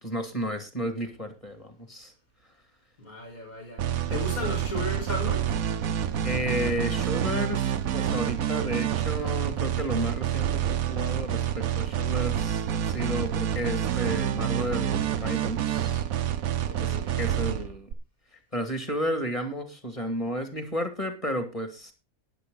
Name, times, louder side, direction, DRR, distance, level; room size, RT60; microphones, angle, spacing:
voice 1, 0.0-2.1 6.2-16.0 16.8-17.9 18.5-21.9, equal, 20° left, 2.4 m, -32 dB
voice 2, 3.0-5.6 16.6-17.2, left 1 dB, 75° left, 5.7 m, -35 dB
sound 1, 3.8-17.9, right 10 dB, 75° right, 1.2 m, -28 dB
13.5 x 10.0 x 3.9 m
omnidirectional pair, 1.5 m